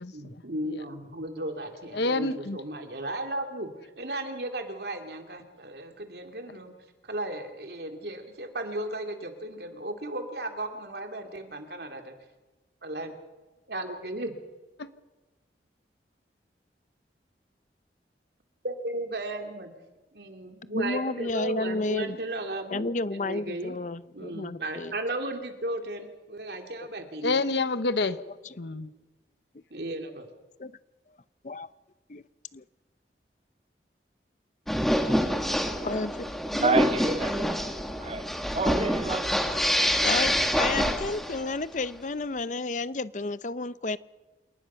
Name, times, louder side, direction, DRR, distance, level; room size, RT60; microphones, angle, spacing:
voice 1, 0.1-3.7 4.0-6.7 7.0-12.1 12.8-13.1 13.7-14.3 18.6-19.7 20.1-23.8 24.1-27.4 29.7-30.3, right 1 dB, 70° right, 2.9 m, -35 dB
voice 2, 1.9-2.6 14.8-14.9 27.2-28.2 28.6-28.9, left 3 dB, 80° left, 1.0 m, -27 dB
voice 3, 20.7-22.2 22.7-24.9 28.4-28.6 30.6-30.7 31.4-31.7 32.1-32.2 32.5-32.6 35.8-36.3 36.5-36.8 39.5-39.6 40.0-44.0, left 3 dB, 45° left, 0.7 m, -31 dB
sound 1, 34.7-41.5, equal, ahead, 1.4 m, -26 dB
voice 4, 36.6-37.6 38.0-39.6, right 3 dB, 35° right, 0.8 m, -29 dB
28.0 x 18.5 x 5.8 m
head